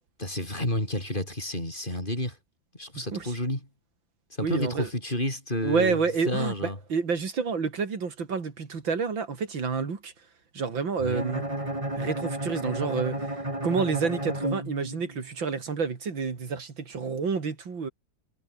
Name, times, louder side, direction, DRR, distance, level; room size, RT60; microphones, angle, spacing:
voice 1, 0.2-2.4 2.7-3.6 4.4-6.8 11.0-11.3, left 1 dB, 25° left, 6.6 m, -30 dB
voice 2, 3.0-3.3 4.4-4.9 5.6-10.1 10.5-11.4 12.0-13.3 13.6-17.9, right 5 dB, 85° right, 3.6 m, -29 dB
Bowed string instrument, 11.1-15.3, right 1 dB, 15° right, 4.6 m, -32 dB
omnidirectional pair, 2.0 m